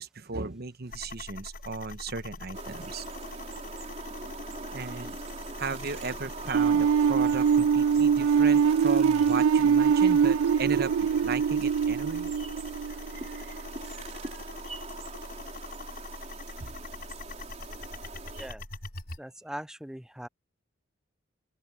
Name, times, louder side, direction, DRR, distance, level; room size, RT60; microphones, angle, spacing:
voice 1, 0.0-3.0 4.7-5.2 5.6-10.9 11.2-12.3 12.9-14.5 16.6-16.7, right 4 dB, 50° right, 1.1 m, -36 dB
sound 1, 0.9-19.2, left 2 dB, 50° left, 4.8 m, -43 dB
sound 2, 2.5-18.5, right 3 dB, 35° right, 4.1 m, -42 dB
sound 3, 6.5-13.4, right 7 dB, 80° right, 0.3 m, -23 dB
voice 2, 19.2-20.3, equal, 5° right, 0.4 m, -40 dB
open air
head